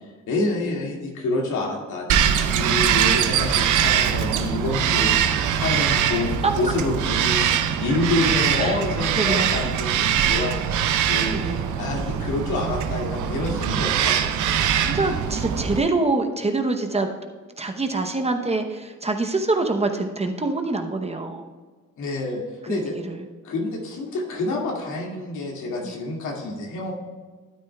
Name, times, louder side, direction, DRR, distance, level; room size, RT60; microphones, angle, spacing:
voice 1, 0.3-11.4 11.8-14.6 22.0-22.4 22.7-22.9 23.4-26.9, left 2 dB, 80° left, -1 dB, 2.3 m, -28 dB
Bird vocalization bird call bird song, 2.1-15.8, right 9 dB, 80° right, 0.7 m, -22 dB
voice 2, 2.8-3.4 6.4-6.5 8.6-8.8 9.2-9.6 11.3-11.6 14.5-17.1 17.6-21.5 23.0-23.2 25.8-26.0, right 3 dB, 20° right, 5 dB, 0.9 m, -25 dB
12.5 x 9.4 x 2.3 m, 1.4 s
cardioid pair, 90°, 30 cm